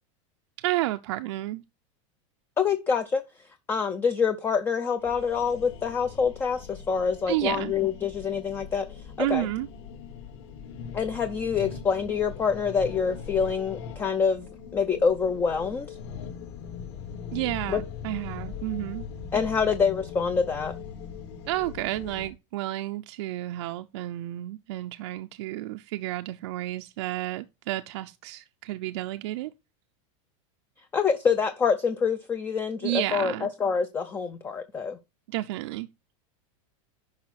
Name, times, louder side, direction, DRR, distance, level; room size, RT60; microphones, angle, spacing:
voice 1, 0.6-1.6 7.3-7.7 9.2-9.7 17.3-19.1 21.4-29.5 32.8-33.5 35.3-35.9, right 16 dB, 60° right, 0.6 m, -31 dB
voice 2, 2.6-3.2 3.7-8.9 9.2-9.5 10.9-16.0 17.7-17.8 19.3-20.7 30.9-35.0, left 6 dB, 10° left, 0.5 m, -26 dB
sound 1, 5.0-22.3, left 6 dB, 55° left, 3.4 m, -40 dB
10.5 x 5.7 x 4.1 m
supercardioid pair, 170°, 17 cm